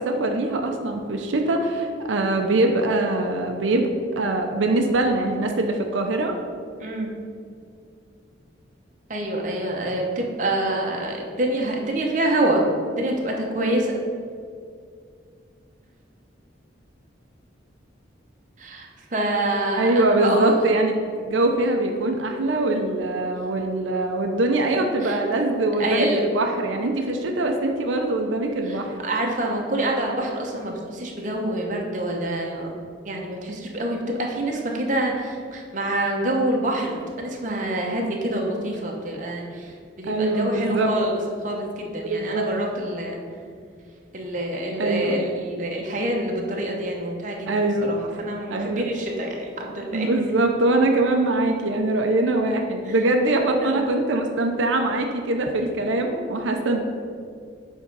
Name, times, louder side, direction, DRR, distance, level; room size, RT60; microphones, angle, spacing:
voice 1, 0.0-6.4 19.8-29.0 40.1-40.9 42.1-42.5 44.8-45.2 47.5-47.9 48.5-48.9 49.9-56.8, right 2 dB, 90° right, 3 dB, 0.6 m, -23 dB
voice 2, 6.8-7.1 9.1-14.0 18.6-20.6 25.0-25.2 25.8-26.2 28.7-32.7 33.0-43.2 44.1-50.1 52.8-52.9 53.3-53.8, right 1 dB, 40° right, 0 dB, 0.9 m, -26 dB
7.3 x 3.7 x 5.3 m, 2.2 s
head